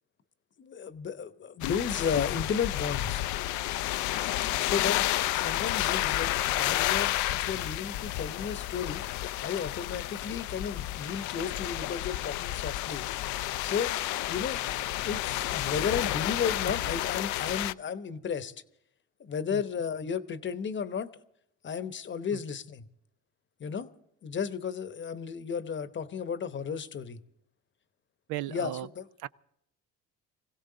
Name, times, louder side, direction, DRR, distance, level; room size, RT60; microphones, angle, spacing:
voice 1, 0.6-3.2 4.6-5.1 5.3-9.0 9.4-13.1 13.6-13.9 14.3-14.6 15.0-18.5 19.2-21.1 21.6-22.8 23.6-23.9 24.2-27.2 28.5-29.0, left 6 dB, 35° left, 1.0 m, -33 dB
sound 1, 1.6-17.7, left 15 dB, 70° left, 0.5 m, -31 dB
voice 2, 28.3-28.9 29.2-29.3, right 15 dB, 70° right, 0.5 m, -36 dB
21.5 x 16.5 x 3.9 m
supercardioid pair, 80°, 31 cm